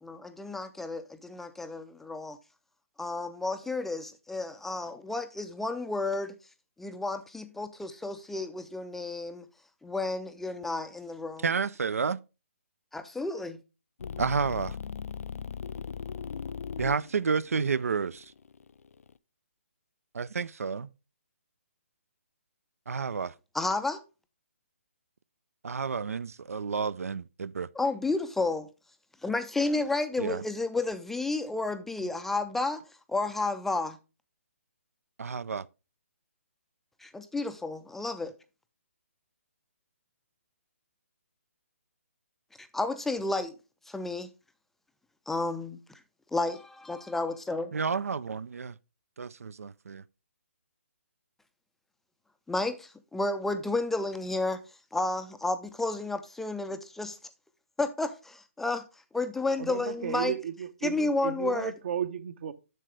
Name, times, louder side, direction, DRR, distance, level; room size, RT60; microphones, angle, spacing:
voice 1, 0.0-2.4 3.0-6.3 6.8-9.4 9.8-11.4 12.9-13.6 23.5-24.0 27.8-28.7 29.2-32.8 33.1-34.0 37.0-38.3 42.6-43.5 43.9-44.3 45.3-46.0 46.3-47.7 52.5-54.6 54.9-57.2 57.8-58.8 59.1-60.3 60.8-61.7, left 2 dB, 5° left, 0.3 m, -31 dB
voice 2, 11.4-12.2 14.2-14.8 16.8-18.3 20.1-20.9 22.9-23.3 25.6-27.7 30.2-30.4 32.0-32.1 35.2-35.7 47.7-48.8 49.2-50.0, right 5 dB, 85° right, 0.4 m, -30 dB
sound 1, 14.0-19.1, left 6 dB, 80° left, 0.4 m, -39 dB
voice 3, 59.6-62.5, right 8 dB, 50° right, 0.8 m, -34 dB
7.5 x 6.6 x 3.2 m
hypercardioid pair, 150°, 8 cm